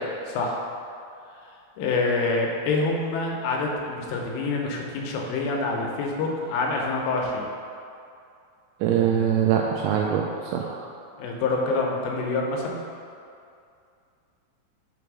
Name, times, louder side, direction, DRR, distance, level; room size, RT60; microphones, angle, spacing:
voice 1, 0.3-0.6 1.8-7.4 11.2-12.8, left 3 dB, 80° left, 0 dB, 3.3 m, -26 dB
voice 2, 8.8-10.9, right 8 dB, 85° right, 0 dB, 2.7 m, -23 dB
8.0 x 3.4 x 6.0 m, 2.4 s
omnidirectional pair, 5.8 m